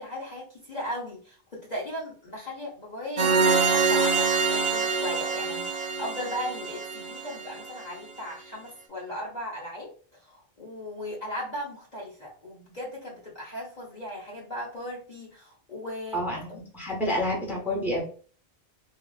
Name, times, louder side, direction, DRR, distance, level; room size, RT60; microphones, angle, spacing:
voice 1, 0.0-16.2 16.5-16.6, equal, 45° left, -5 dB, 0.8 m, -37 dB
sound 1, 3.2-7.8, right 4 dB, 50° right, 0.5 m, -25 dB
voice 2, 16.1-18.0, equal, ahead, -3 dB, 0.8 m, -29 dB
3.3 x 2.3 x 2.3 m, 0.42 s
omnidirectional pair, 1.1 m